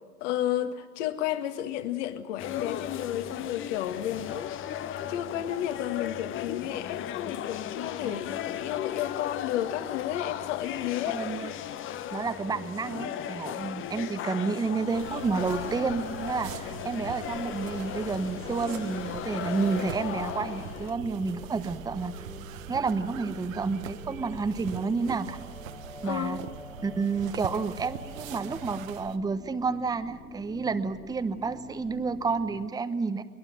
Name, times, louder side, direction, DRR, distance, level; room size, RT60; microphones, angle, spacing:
voice 1, 0.2-4.6 4.9-11.2 26.0-26.4, left 12 dB, 50° left, 2.0 m, -32 dB
sound 1, 2.4-20.9, left 10 dB, 25° left, 1.0 m, -36 dB
voice 2, 11.1-11.5 12.1-22.1 22.7-25.4 26.0-26.4 26.8-33.2, right 4 dB, 10° right, 0.9 m, -30 dB
sound 2, 14.9-29.2, right 8 dB, 60° right, 1.4 m, -42 dB
sound 3, 17.9-32.7, left 3 dB, 10° left, 1.8 m, -47 dB
21.5 x 21.0 x 9.2 m
figure-of-eight pair, 95°, 45 cm